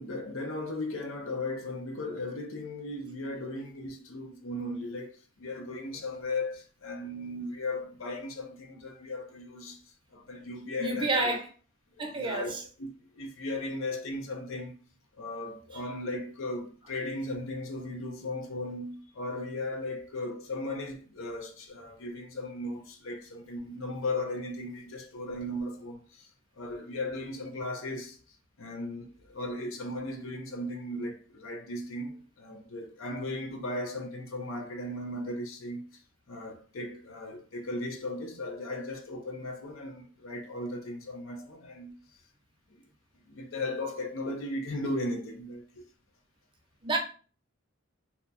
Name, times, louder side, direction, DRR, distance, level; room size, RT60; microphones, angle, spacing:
voice 1, 0.0-11.4 12.0-12.9 13.1-14.8 15.2-26.3 26.6-28.2 28.6-36.0 36.3-42.0 42.7-42.8 43.3-45.9, left 2 dB, 70° left, 0.7 m, -37 dB
voice 2, 10.8-11.4 12.0-12.6 46.8-47.0, right 2 dB, 25° right, 0.6 m, -29 dB
2.8 x 2.2 x 3.9 m
head